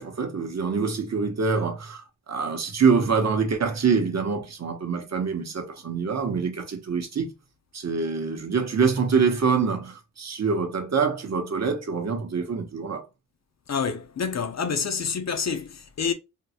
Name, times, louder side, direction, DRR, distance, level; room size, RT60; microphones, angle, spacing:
voice 1, 0.0-7.3 7.7-13.1, right 5 dB, 50° right, 0.8 m, -25 dB
voice 2, 13.7-16.1, left 6 dB, 55° left, 0.5 m, -28 dB
3.6 x 2.0 x 2.7 m
wide cardioid pair, 115°, 33 cm